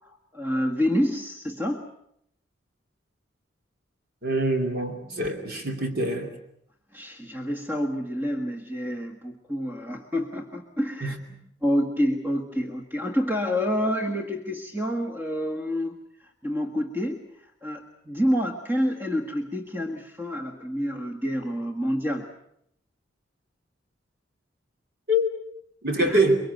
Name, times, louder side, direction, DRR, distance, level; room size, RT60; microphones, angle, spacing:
voice 1, 0.0-1.9 5.1-5.2 5.5-5.6 6.9-11.2 11.6-22.3 26.0-26.2, equal, 10° right, 3 dB, 1.6 m, -28 dB
voice 2, 4.2-6.3 11.0-11.2 25.1-25.3 25.8-26.4, right 1 dB, 55° right, 4 dB, 2.8 m, -24 dB
23.5 x 23.5 x 8.0 m, 0.72 s
head